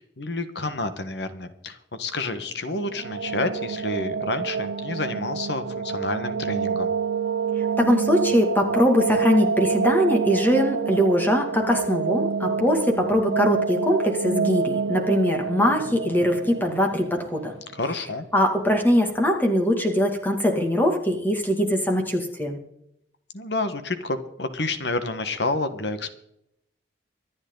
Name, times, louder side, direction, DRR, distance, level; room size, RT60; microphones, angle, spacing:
voice 1, 0.0-6.9 17.7-18.2 23.3-26.1, left 2 dB, 75° left, 10 dB, 1.4 m, -29 dB
sound 1, 2.7-17.6, right 5 dB, 85° right, 0.5 m, -27 dB
voice 2, 7.8-17.5 18.3-22.6, equal, 10° left, 3 dB, 2.3 m, -22 dB
25.0 x 9.6 x 3.9 m, 0.78 s
head